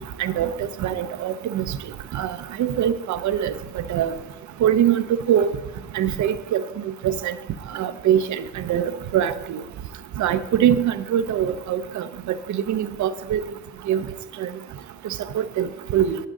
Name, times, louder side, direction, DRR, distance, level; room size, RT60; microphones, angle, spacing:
voice 1, 0.2-1.8 2.1-4.1 4.6-5.5 5.9-6.6 7.0-7.3 7.7-9.6 10.2-13.4 13.9-14.0 14.4-14.5 15.3-16.2, right 10 dB, 70° right, 12 dB, 0.7 m, -23 dB
12.0 x 8.8 x 3.8 m, 1.0 s
cardioid pair, 90°, 30 cm